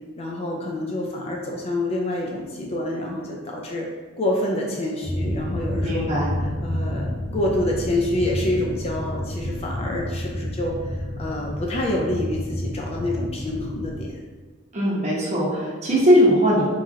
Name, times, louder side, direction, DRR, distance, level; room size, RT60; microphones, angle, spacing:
voice 1, 0.2-3.9 4.2-6.0 6.4-14.1, left 1 dB, 30° left, -1 dB, 0.4 m, -27 dB
sound 1, 5.0-14.0, left 1 dB, 10° left, 0.9 m, -30 dB
voice 2, 5.8-6.3 14.7-16.7, equal, 35° right, -5 dB, 0.9 m, -19 dB
3.5 x 3.0 x 2.7 m, 1.4 s
head